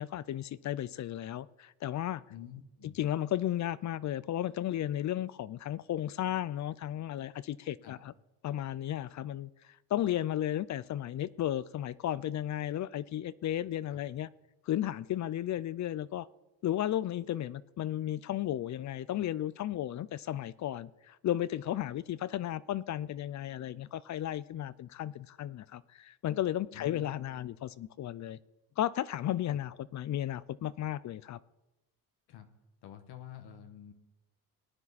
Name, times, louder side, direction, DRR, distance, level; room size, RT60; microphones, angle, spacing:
voice 1, 0.0-2.2 3.0-8.0 8.4-14.3 14.7-16.3 16.6-28.4 28.8-31.4, left 12 dB, 45° left, 0.5 m, -34 dB
voice 2, 2.3-3.0 7.8-8.0 13.9-14.0 26.7-27.1 29.5-29.6 32.3-32.5 32.8-33.9, left 10 dB, 75° left, 1.4 m, -49 dB
18.5 x 10.0 x 4.1 m
cardioid pair, 110°, 40 cm